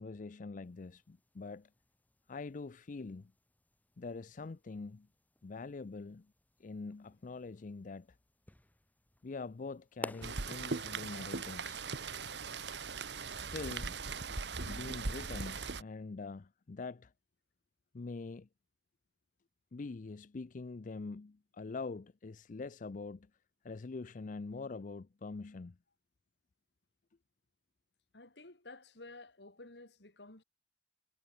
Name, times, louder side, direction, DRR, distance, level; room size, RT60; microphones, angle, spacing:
voice 1, 0.0-1.7 2.3-3.3 4.0-5.1 5.4-6.3 6.6-8.2 9.2-11.8 13.4-13.9 14.7-17.1 17.9-18.5 19.7-23.3 23.6-25.8, left 3 dB, 50° left, 0.5 m, -44 dB
sound 1, 0.6-12.3, left 1 dB, 10° left, 0.9 m, -54 dB
Rain, 10.2-15.8, right 4 dB, 80° right, 1.6 m, -39 dB
voice 2, 28.1-30.4, left 2 dB, 80° left, 3.3 m, -53 dB
head